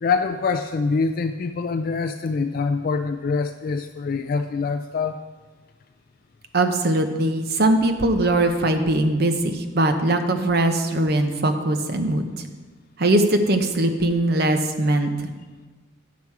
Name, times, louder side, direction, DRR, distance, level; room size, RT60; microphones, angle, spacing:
voice 1, 0.0-5.2, left 4 dB, 45° left, 8 dB, 0.3 m, -24 dB
voice 2, 6.5-12.3 13.0-15.3, right 1 dB, 50° right, 6 dB, 0.8 m, -21 dB
10.5 x 6.0 x 4.7 m, 1.3 s
head